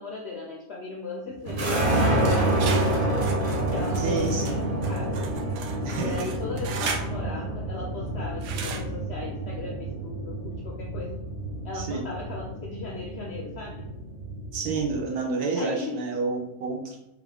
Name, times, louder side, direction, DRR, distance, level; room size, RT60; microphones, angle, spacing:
voice 1, 0.0-3.3 3.7-5.2 5.9-11.2 11.6-13.8 15.5-16.0, left 3 dB, 65° left, -2 dB, 0.6 m, -37 dB
sound 1, 1.5-15.0, right 1 dB, 50° right, 0.6 m, -28 dB
sound 2, 1.6-7.1 8.4-8.8, right 5 dB, 90° right, 1.2 m, -36 dB
voice 2, 4.0-4.6 5.8-6.1 11.7-12.0 14.5-17.0, right 4 dB, 70° right, 0 dB, 1.2 m, -29 dB
3.9 x 2.4 x 3.5 m, 0.93 s
omnidirectional pair, 1.7 m